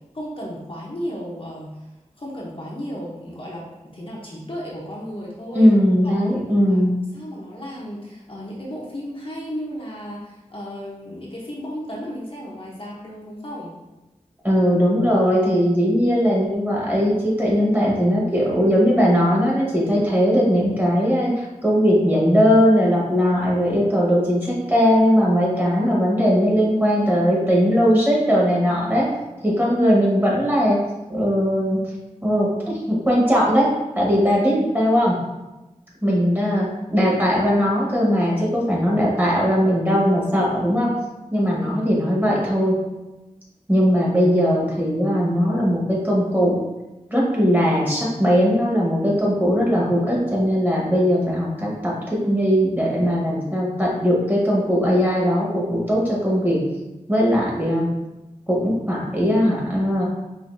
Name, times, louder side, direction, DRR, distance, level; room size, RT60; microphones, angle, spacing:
voice 1, 0.0-1.7 2.2-5.7 6.0-6.8 7.1-13.8 41.4-41.8, equal, 45° left, -5 dB, 1.0 m, -34 dB
voice 2, 5.5-6.9 14.4-29.1 29.4-30.8 31.1-31.8 32.2-32.5 32.9-33.7 33.9-35.2 36.0-40.9 41.3-42.8 43.7-46.5 47.1-56.6 57.1-57.8 58.5-60.0, equal, 15° right, -5 dB, 1.3 m, -19 dB
5.2 x 2.8 x 2.7 m, 1.0 s
wide cardioid pair, 65°, 13 cm